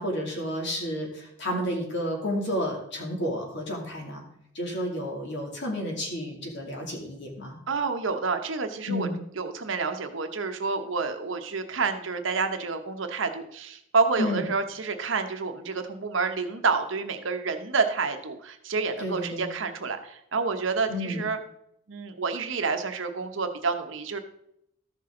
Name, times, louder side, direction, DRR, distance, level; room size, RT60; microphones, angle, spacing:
voice 1, 0.0-4.2 4.5-7.6 8.9-9.2 14.2-14.4 19.0-19.5 20.9-21.2, equal, 60° left, 0 dB, 2.6 m, -31 dB
voice 2, 7.7-9.1 9.4-21.4 21.9-24.2, right 4 dB, 65° right, 7 dB, 0.9 m, -29 dB
13.5 x 6.0 x 3.7 m, 0.75 s
head